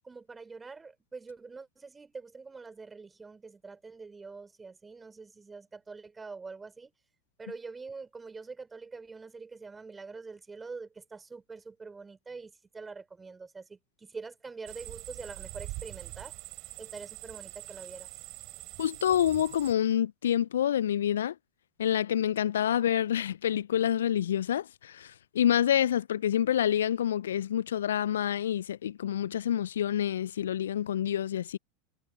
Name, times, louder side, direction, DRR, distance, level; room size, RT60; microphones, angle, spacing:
voice 1, 0.0-6.9 7.4-16.3 16.8-18.1, right 4 dB, 15° right, 3.8 m, -45 dB
sound 1, 14.7-19.7, right 22 dB, 45° right, 4.7 m, -44 dB
voice 2, 18.8-21.3 21.8-31.6, left 10 dB, 70° left, 0.7 m, -27 dB
figure-of-eight pair, 85°, 0 cm